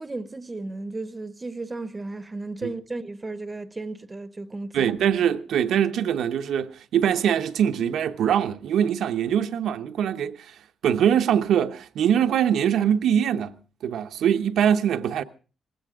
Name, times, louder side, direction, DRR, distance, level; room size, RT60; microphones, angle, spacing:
voice 1, 0.0-4.9, right 2 dB, 15° right, 0.6 m, -34 dB
voice 2, 4.7-10.5 10.8-13.5 13.8-15.2, right 9 dB, 90° right, 0.9 m, -23 dB
19.5 x 16.0 x 3.6 m
wide cardioid pair, 175°, 0 cm